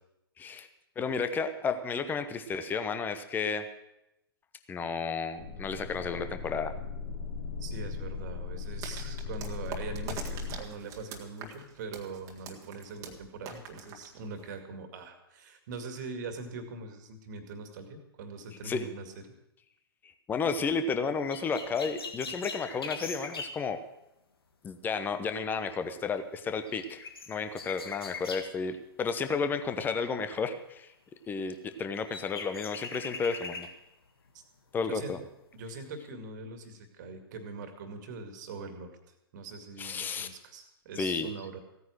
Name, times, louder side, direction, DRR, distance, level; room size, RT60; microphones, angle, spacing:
voice 1, 0.4-0.7 1.0-3.6 4.7-6.7 18.6-18.8 20.3-23.8 24.6-27.0 27.3-30.9 31.3-33.7 34.7-35.2 39.8-40.3 41.0-41.3, left 5 dB, 15° left, 9 dB, 1.0 m, -32 dB
sound 1, 5.4-10.6, left 5 dB, 50° left, 3.0 m, -38 dB
voice 2, 7.6-19.2 34.3-34.4 34.9-35.2 35.5-41.6, right 3 dB, 45° right, 7 dB, 2.2 m, -42 dB
sound 2, 8.8-14.6, right 6 dB, 25° right, 1.8 m, -44 dB
sound 3, 21.3-23.6 26.4-26.5 26.7-28.5 31.5-31.6 32.0-33.8 34.3-34.4, left 4 dB, 70° left, 1.8 m, -41 dB
16.0 x 9.5 x 6.4 m, 0.86 s
figure-of-eight pair, 110°, 13 cm